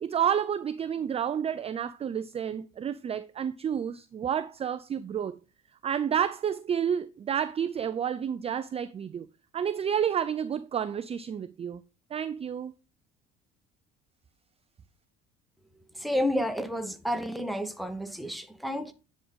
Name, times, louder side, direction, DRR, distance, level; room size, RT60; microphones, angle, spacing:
voice 1, 0.0-5.4 5.8-9.3 9.5-11.8 12.1-12.7, right 8 dB, 20° right, 0.3 m, -30 dB
voice 2, 16.0-18.9, equal, ahead, 0.9 m, -30 dB
9.8 x 3.8 x 3.6 m
hypercardioid pair, 65°, 30 cm